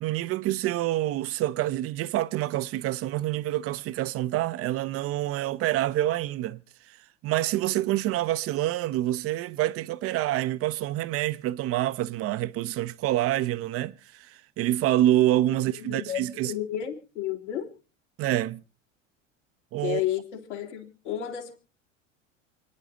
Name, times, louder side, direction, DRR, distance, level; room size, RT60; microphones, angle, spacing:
voice 1, 0.0-6.6 7.2-16.5 18.2-18.6 19.7-20.0, right 14 dB, 40° right, 0.6 m, -27 dB
voice 2, 15.8-17.7 19.8-21.6, left 11 dB, 70° left, 2.8 m, -32 dB
28.5 x 10.0 x 2.7 m
figure-of-eight pair, 75°, 37 cm